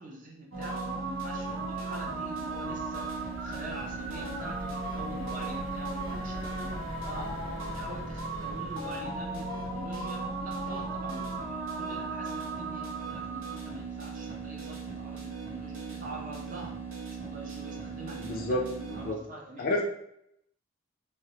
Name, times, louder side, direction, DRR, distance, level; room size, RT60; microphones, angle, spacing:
voice 1, 0.0-16.8 17.2-19.7, right 2 dB, 45° right, -1 dB, 0.5 m, -44 dB
sound 1, 0.5-19.1, right 3 dB, 85° right, 0.6 m, -36 dB
sound 2, 0.9-17.1 17.5-17.6 17.9-18.1, left 1 dB, 75° left, 0.7 m, -47 dB
voice 2, 18.2-18.6 18.9-19.2 19.6-19.8, left 1 dB, 45° left, 0 dB, 0.4 m, -29 dB
2.4 x 2.1 x 2.7 m, 0.75 s
head